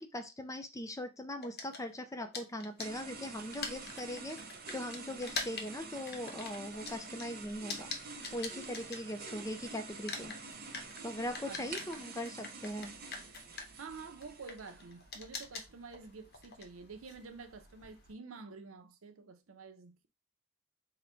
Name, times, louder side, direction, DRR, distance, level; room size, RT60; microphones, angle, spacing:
voice 1, 0.0-4.4 4.7-7.9 8.3-10.3 11.0-12.9, left 1 dB, 15° left, 0.4 m, -40 dB
sound 1, 1.4-9.6 9.9-18.1, left 4 dB, 50° left, 0.8 m, -45 dB
sound 2, 2.8-15.1, right 4 dB, 45° right, 0.7 m, -47 dB
voice 2, 11.5-11.9 13.8-20.1, right 4 dB, 85° right, 0.6 m, -49 dB
3.9 x 2.2 x 4.3 m
head